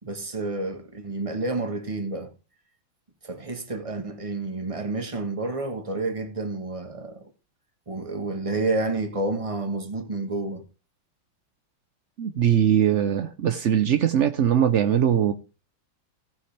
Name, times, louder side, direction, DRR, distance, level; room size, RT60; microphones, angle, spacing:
voice 1, 0.0-2.3 3.2-7.3 7.9-10.7, right 2 dB, 20° right, 1.2 m, -29 dB
voice 2, 12.2-15.3, right 9 dB, 75° right, 0.6 m, -21 dB
17.0 x 6.2 x 3.3 m
omnidirectional pair, 2.2 m